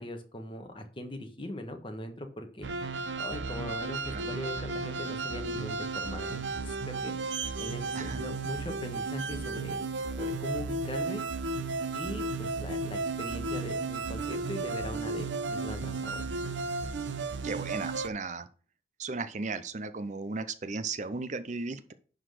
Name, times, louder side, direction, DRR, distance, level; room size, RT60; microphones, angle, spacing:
voice 1, 0.0-2.7 3.2-9.8 10.2-11.2 11.9-16.3, left 1 dB, 30° left, 6 dB, 1.3 m, -40 dB
sound 1, 2.6-18.1, right 3 dB, 85° right, 0.8 m, -34 dB
voice 2, 17.4-18.5 19.0-21.9, right 3 dB, 40° right, 12 dB, 0.6 m, -35 dB
11.0 x 4.0 x 6.4 m, 0.40 s
head